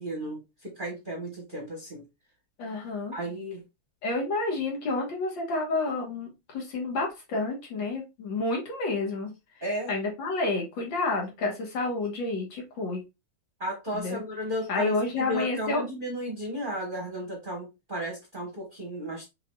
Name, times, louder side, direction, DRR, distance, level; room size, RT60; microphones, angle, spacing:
voice 1, 0.0-2.0 3.1-3.6 9.6-9.9 13.6-19.3, equal, 30° right, 0 dB, 1.1 m, -34 dB
voice 2, 2.6-3.1 4.0-9.3 9.9-13.0 13.9-14.2 14.7-15.8, left 3 dB, 65° left, 0 dB, 2.1 m, -29 dB
5.8 x 3.4 x 2.3 m, 0.24 s
omnidirectional pair, 2.3 m